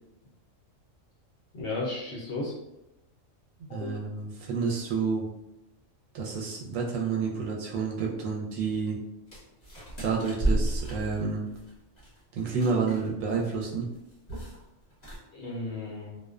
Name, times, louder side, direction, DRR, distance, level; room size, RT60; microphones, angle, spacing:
voice 1, 1.5-2.5 3.7-4.0 15.3-16.2, left 2 dB, 60° left, -5 dB, 0.7 m, -34 dB
voice 2, 3.7-5.2 6.1-9.0 10.0-11.5 12.3-13.9, right 5 dB, 85° right, -2 dB, 1.0 m, -29 dB
sound 1, 9.3-13.1 13.3-13.7 13.9-14.6 14.9-15.2, right 2 dB, 35° left, 1.0 m, -32 dB
2.4 x 2.2 x 2.3 m, 0.90 s
omnidirectional pair, 1.4 m